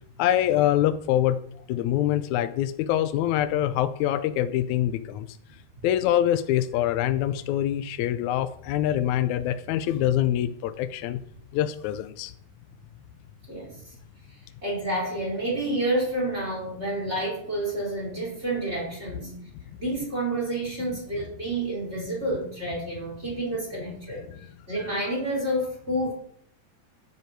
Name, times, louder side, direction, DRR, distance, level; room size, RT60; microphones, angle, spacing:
voice 1, 0.2-1.4 1.7-5.4 5.8-11.2 11.5-12.3 24.4-24.5, left 12 dB, 75° left, 11 dB, 1.9 m, -25 dB
voice 2, 13.5-13.8 14.6-19.4 19.8-24.2 24.7-26.1, right 1 dB, 20° right, -2 dB, 4.9 m, -29 dB
15.5 x 9.8 x 4.6 m, 0.66 s
omnidirectional pair, 3.7 m